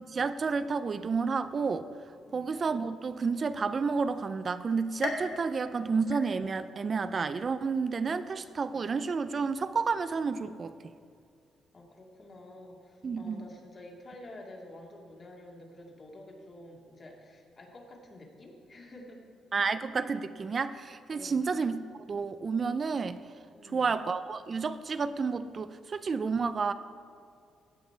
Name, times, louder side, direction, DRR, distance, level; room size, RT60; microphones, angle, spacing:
voice 1, 0.1-1.9 2.3-10.7 13.0-13.4 19.5-23.2 23.7-26.7, right 5 dB, 40° right, 12 dB, 0.3 m, -30 dB
sound 1, 5.0-6.7 7.2-7.8 8.3-8.4 9.3-9.4, left 4 dB, 70° left, 1.4 m, -40 dB
voice 2, 11.7-19.2 21.1-21.5 23.5-23.9, left 1 dB, 40° left, 0 dB, 2.0 m, -49 dB
16.0 x 5.3 x 4.4 m, 2.4 s
cardioid pair, 90°, 0 cm